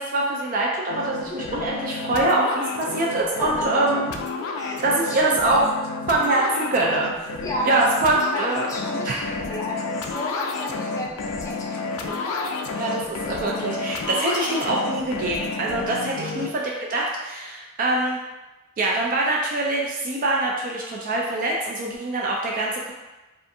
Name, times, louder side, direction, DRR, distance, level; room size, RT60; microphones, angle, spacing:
voice 1, 0.0-4.1 4.8-5.7 6.1-7.1 7.7-8.7 9.0-9.2 12.7-18.2 18.8-22.9, right 2 dB, 45° right, -2 dB, 0.3 m, -24 dB
sound 1, 0.9-16.5, left 3 dB, 90° left, 0.3 m, -30 dB
voice 2, 3.4-4.0 4.5-5.7 7.4-7.8 8.2-12.5 16.3-16.5, left 1 dB, 15° left, -4 dB, 0.5 m, -33 dB
2.5 x 2.4 x 2.6 m, 1.1 s
head